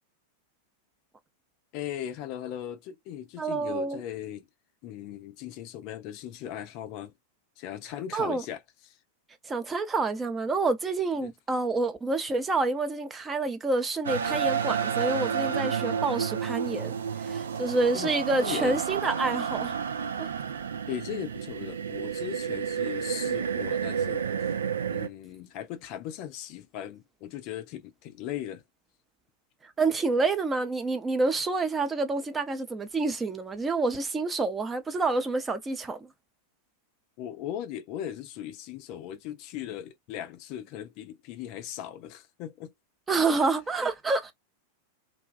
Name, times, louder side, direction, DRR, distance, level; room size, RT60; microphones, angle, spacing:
voice 1, 1.7-4.4 4.8-7.1 7.6-9.0 11.2-11.3 17.9-18.8 20.9-24.3 24.9-28.6 37.2-42.7 43.3-43.5, left 11 dB, 45° left, 0.4 m, -38 dB
voice 2, 3.4-4.0 8.1-8.4 9.5-16.9 17.2-19.7 20.2-20.3 29.8-36.1 43.1-44.3, right 3 dB, 15° right, 0.5 m, -28 dB
sound 1, 14.0-25.1, right 7 dB, 70° right, 0.4 m, -30 dB
2.3 x 2.2 x 2.3 m
figure-of-eight pair, 90°, 0 cm